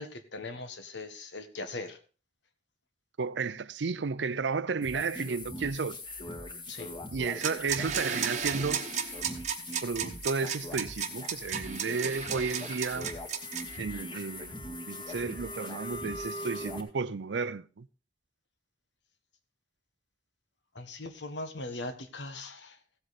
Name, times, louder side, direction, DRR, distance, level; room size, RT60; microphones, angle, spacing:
voice 1, 0.0-2.0 6.7-6.9 20.7-22.8, left 2 dB, 85° left, 1.5 m, -40 dB
voice 2, 3.2-6.0 7.1-8.8 9.8-13.1 13.8-17.9, right 4 dB, 85° right, 0.6 m, -33 dB
sound 1, 4.8-16.8, left 1 dB, 25° left, 2.0 m, -41 dB
sound 2, 7.3-13.8, right 7 dB, 40° right, 1.0 m, -34 dB
15.5 x 8.0 x 4.2 m
head